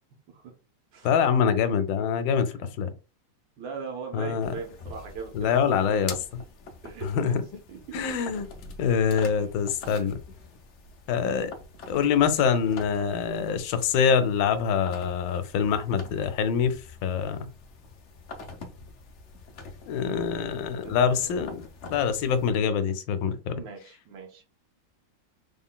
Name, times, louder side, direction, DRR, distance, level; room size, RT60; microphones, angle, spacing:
voice 1, 1.0-2.9 4.1-4.5 5.3-6.1 7.0-7.4 7.9-8.5 8.8-10.2 11.1-11.5 11.9-17.5 19.9-23.5, left 7 dB, 85° left, 1.3 m, -25 dB
voice 2, 3.6-5.9 6.8-7.3 7.7-8.0 9.9-10.1 20.8-21.5 23.5-24.4, right 5 dB, 85° right, 1.6 m, -40 dB
sound 1, 4.4-22.5, left 4 dB, 70° left, 0.6 m, -45 dB
3.7 x 3.6 x 2.2 m
omnidirectional pair, 2.0 m